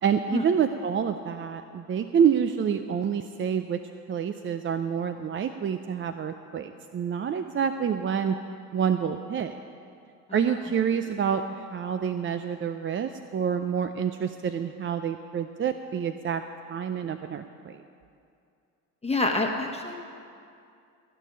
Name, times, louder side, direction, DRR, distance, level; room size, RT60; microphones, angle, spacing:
voice 1, 0.0-3.8 4.1-8.4 8.7-9.5 10.3-16.4 16.7-17.8, right 7 dB, 30° right, 9 dB, 0.6 m, -27 dB
voice 2, 19.0-19.9, left 2 dB, 15° left, 2 dB, 1.3 m, -27 dB
15.5 x 6.7 x 9.4 m, 2.4 s
hypercardioid pair, 75°, 41 cm